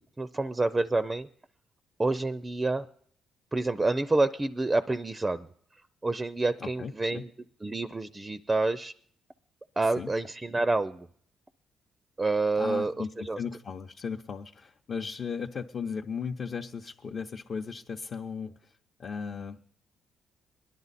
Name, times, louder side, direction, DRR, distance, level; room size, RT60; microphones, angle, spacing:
voice 1, 0.2-1.3 2.0-2.9 3.5-5.5 6.0-7.3 7.6-8.9 9.8-11.1 12.2-13.4, right 2 dB, 20° right, 12 dB, 0.5 m, -28 dB
voice 2, 6.6-7.2 10.0-10.1 12.6-18.7 19.0-19.6, left 6 dB, 50° left, 1 dB, 0.8 m, -36 dB
20.0 x 11.0 x 4.1 m, 0.63 s
cardioid pair, 90°, 0 cm